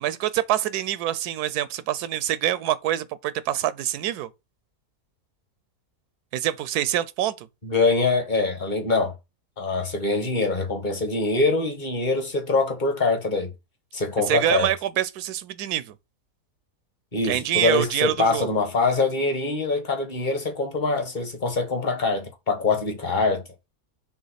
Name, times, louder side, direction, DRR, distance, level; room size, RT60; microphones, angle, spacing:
voice 1, 0.0-4.3 6.3-7.5 14.3-15.9 17.2-18.5, right 12 dB, 85° right, 1.1 m, -25 dB
voice 2, 7.6-9.1 9.6-13.5 13.9-14.7 17.1-23.4, left 3 dB, 30° left, 1.5 m, -24 dB
6.3 x 3.4 x 5.6 m
omnidirectional pair, 1.6 m